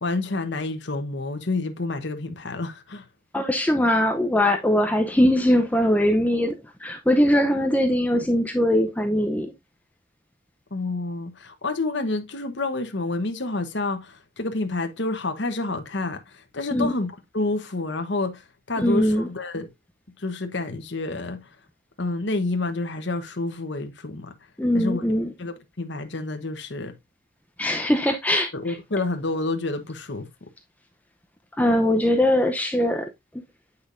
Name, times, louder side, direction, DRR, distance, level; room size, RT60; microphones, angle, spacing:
voice 1, 0.0-3.1 10.7-19.7 20.2-21.5 22.0-24.3 24.7-26.9 28.5-30.3, left 2 dB, 60° left, 1.1 m, -29 dB
voice 2, 3.3-9.5 16.7-17.0 18.8-19.3 24.6-25.3 27.6-28.8 31.6-33.1, left 1 dB, 10° left, 0.7 m, -21 dB
8.4 x 5.5 x 2.6 m
head